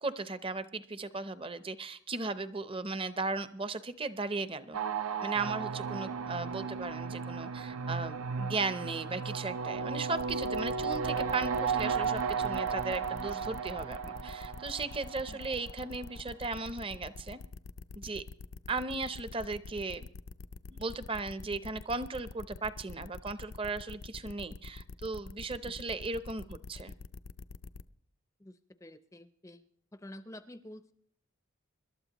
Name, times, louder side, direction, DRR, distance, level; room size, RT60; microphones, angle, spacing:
voice 1, 0.0-4.8 5.2-17.4 17.9-18.2 18.7-20.1 20.7-26.9, right 3 dB, 25° right, 13 dB, 0.6 m, -36 dB
sound 1, 4.7-15.9, right 5 dB, 85° right, 0.7 m, -34 dB
sound 2, 10.2-27.8, left 3 dB, 75° left, 0.5 m, -46 dB
voice 2, 28.4-29.6 29.9-30.9, left 1 dB, 15° left, 11 dB, 0.5 m, -49 dB
26.0 x 12.5 x 3.0 m, 0.63 s
head